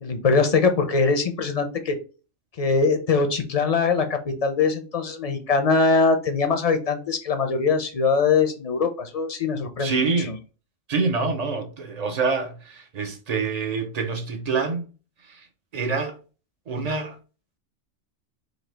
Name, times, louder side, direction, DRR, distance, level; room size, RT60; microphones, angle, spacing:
voice 1, 0.0-1.9 2.6-10.4, left 4 dB, 45° left, 0.5 m, -22 dB
voice 2, 9.8-10.3 10.9-14.9 15.2-15.5 15.7-16.2 16.7-17.2, right 4 dB, 50° right, 0.5 m, -26 dB
4.0 x 2.7 x 3.3 m
omnidirectional pair, 1.3 m